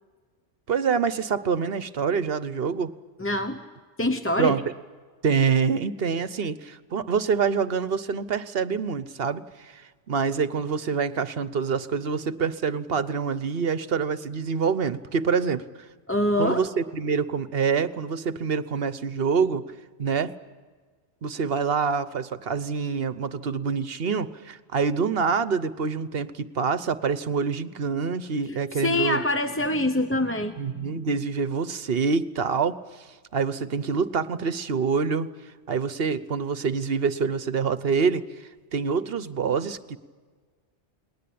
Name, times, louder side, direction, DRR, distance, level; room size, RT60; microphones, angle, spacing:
voice 1, 0.7-2.9 4.4-4.6 5.2-15.6 16.4-19.7 20.0-20.3 21.2-29.2 30.6-33.1 33.3-35.3 35.7-38.2 38.7-40.0, right 5 dB, 55° right, 14 dB, 1.1 m, -26 dB
voice 2, 3.2-3.6 4.0-4.6 16.1-16.7 28.8-31.1, left 1 dB, 15° left, 7 dB, 0.8 m, -25 dB
29.5 x 20.5 x 8.6 m, 1.5 s
omnidirectional pair, 1.2 m